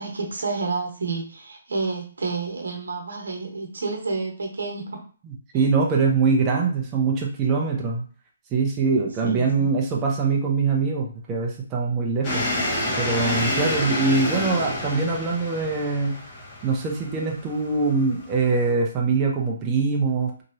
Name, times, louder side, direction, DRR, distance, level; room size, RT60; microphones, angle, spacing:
voice 1, 0.0-5.0 5.5-5.6 9.2-9.7, right 4 dB, 90° right, 2 dB, 1.0 m, -30 dB
voice 2, 5.2-8.0 8.5-12.4 13.0-16.2 16.6-20.4, right 4 dB, 20° right, -1 dB, 0.5 m, -23 dB
sound 1, 12.2-18.7, left 1 dB, 25° left, 1.0 m, -29 dB
2.9 x 2.8 x 2.6 m, 0.41 s
hypercardioid pair, 160°, 0 cm